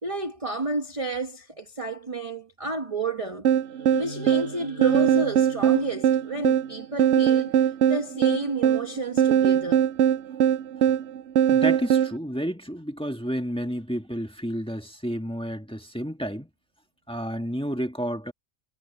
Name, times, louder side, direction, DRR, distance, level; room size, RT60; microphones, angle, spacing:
voice 1, 0.0-3.5 3.9-9.8, right 2 dB, 30° right, 1.1 m, -31 dB
sound 1, 3.4-12.1, right 9 dB, 70° right, 0.8 m, -21 dB
sound 2, 3.6-7.7, left 1 dB, 45° left, 8.0 m, -44 dB
voice 2, 11.5-16.5 17.1-18.3, equal, 5° left, 1.7 m, -31 dB
omnidirectional pair, 1.3 m